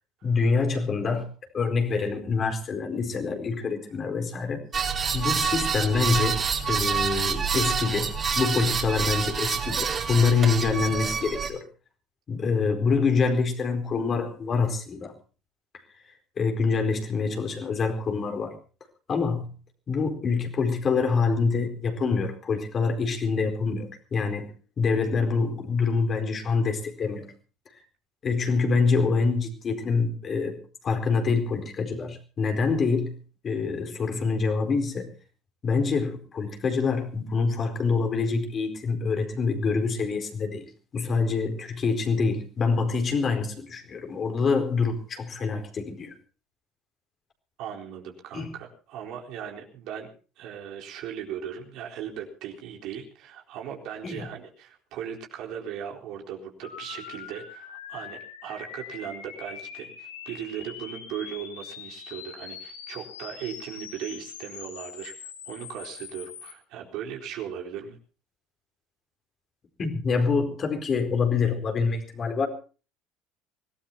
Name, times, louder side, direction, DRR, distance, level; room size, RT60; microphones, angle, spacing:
voice 1, 0.2-1.2 1.5-4.9 5.1-11.6 12.3-15.1 16.0-18.6 19.1-19.5 19.9-24.5 24.8-27.3 28.2-30.6 30.8-33.2 33.4-35.1 35.6-46.1 48.3-48.5 54.0-54.2 69.8-72.5, left 4 dB, 40° left, 4 dB, 4.5 m, -26 dB
sound 1, 4.7-11.5, right 6 dB, 40° right, 4.7 m, -27 dB
voice 2, 47.6-50.1 50.4-68.0, right 9 dB, 65° right, 1 dB, 4.1 m, -38 dB
sound 2, 56.6-66.5, left 8 dB, 85° left, 2.8 m, -43 dB
24.5 x 18.0 x 2.9 m, 0.37 s
hypercardioid pair, 65°, 0 cm